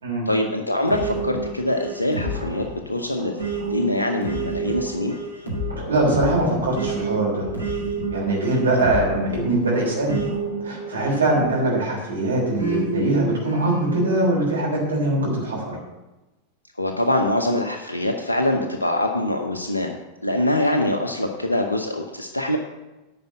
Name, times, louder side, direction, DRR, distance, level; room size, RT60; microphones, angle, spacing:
voice 1, 0.3-3.4 3.7-5.2 16.8-20.0 20.2-22.6, left 1 dB, 85° left, 3 dB, 0.8 m, -24 dB
sound 1, 0.9-12.0 12.6-14.1, right 3 dB, 90° right, 2.6 m, -30 dB
voice 2, 5.9-7.5 8.1-10.2 10.6-15.8, right 2 dB, 70° right, -3 dB, 3.3 m, -22 dB
10.5 x 5.0 x 8.2 m, 1.1 s
figure-of-eight pair, 90°, 0 cm